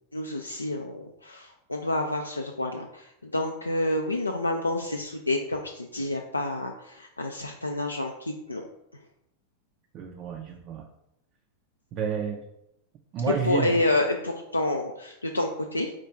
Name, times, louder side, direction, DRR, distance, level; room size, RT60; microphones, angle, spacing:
voice 1, 0.1-8.7 8.9-9.0 13.4-15.9, left 1 dB, 80° left, 2 dB, 0.3 m, -29 dB
voice 2, 9.9-10.9 11.9-12.4 13.1-13.8, right 6 dB, 35° right, 3 dB, 0.4 m, -30 dB
4.4 x 2.4 x 4.2 m, 0.84 s
figure-of-eight pair, 90°, 0 cm